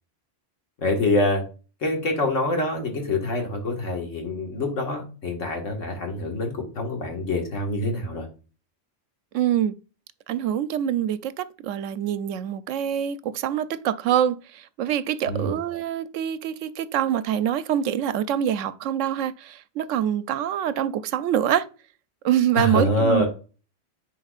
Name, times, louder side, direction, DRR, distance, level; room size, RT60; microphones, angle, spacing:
voice 1, 0.8-1.4 1.8-8.3 15.3-15.6 22.6-23.3, left 2 dB, 85° left, 2.0 m, -25 dB
voice 2, 9.3-9.7 10.3-21.7 22.2-23.3, right 10 dB, 80° right, 0.9 m, -25 dB
10.0 x 4.5 x 2.4 m
omnidirectional pair, 1.3 m